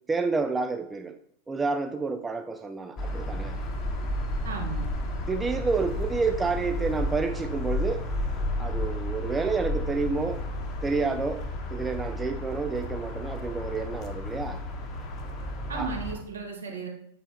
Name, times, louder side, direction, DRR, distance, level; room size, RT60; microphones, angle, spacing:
voice 1, 0.1-1.2 1.5-3.6 5.3-8.1 8.6-10.5 10.8-11.4 11.7-14.6 15.7-15.9, right 4 dB, 15° right, 7 dB, 0.4 m, -29 dB
sound 1, 3.0-16.2, left 1 dB, 35° left, 0.9 m, -32 dB
voice 2, 4.4-4.9 15.7-16.9, right 4 dB, 65° right, 0 dB, 1.7 m, -34 dB
7.2 x 5.4 x 2.8 m, 0.68 s
figure-of-eight pair, 90°, 0 cm